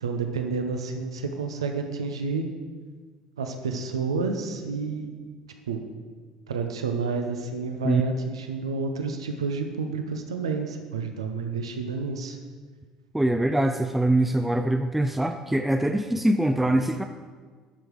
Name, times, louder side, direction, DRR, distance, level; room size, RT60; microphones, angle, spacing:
voice 1, 0.0-2.5 3.4-5.1 5.7-5.8 6.5-12.4, right 4 dB, 80° right, 5 dB, 0.8 m, -30 dB
voice 2, 13.1-17.0, right 1 dB, 5° right, 6 dB, 0.5 m, -23 dB
11.5 x 6.3 x 4.8 m, 1.5 s
figure-of-eight pair, 60°, 3 cm